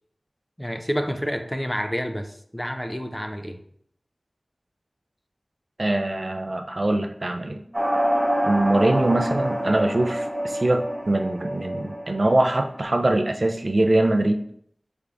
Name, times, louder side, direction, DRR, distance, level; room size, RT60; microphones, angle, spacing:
voice 1, 0.6-3.6, equal, 10° left, 6 dB, 0.4 m, -29 dB
voice 2, 5.8-7.6 8.4-14.4, right 1 dB, 55° right, 5 dB, 0.4 m, -23 dB
sound 1, 7.7-12.7, equal, 20° right, 1.3 m, -27 dB
3.7 x 3.4 x 3.5 m, 0.67 s
wide cardioid pair, 60°, 0 cm